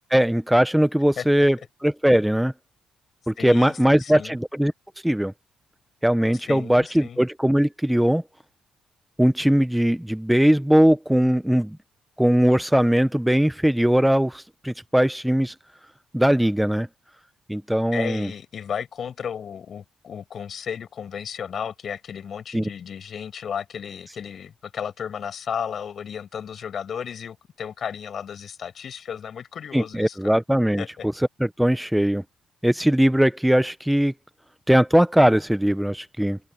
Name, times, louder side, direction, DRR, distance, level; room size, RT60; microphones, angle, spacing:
voice 1, 0.1-2.5 3.3-4.7 5.0-5.3 6.0-8.2 9.2-11.8 12.2-15.5 16.1-16.9 17.5-18.3 22.5-22.6 29.7-30.8 31.4-32.2 32.6-34.1 34.7-36.4, equal, 5° right, 0.9 m, -20 dB
voice 2, 3.4-4.4 6.5-7.2 17.9-30.3 30.8-31.1, left 7 dB, 55° left, 6.0 m, -34 dB
open air
cardioid pair, 90°, 0 cm